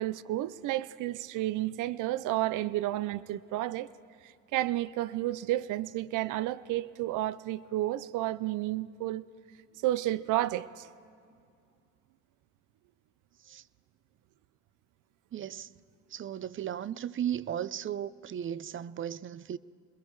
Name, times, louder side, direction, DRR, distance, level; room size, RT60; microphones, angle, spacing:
voice 1, 0.0-3.9 4.2-9.2 9.8-10.9, right 15 dB, 90° right, 0.5 m, -31 dB
voice 2, 15.3-15.7 16.1-19.6, right 10 dB, 40° right, 0.5 m, -36 dB
27.5 x 21.5 x 4.7 m
cardioid pair, 90°, 30 cm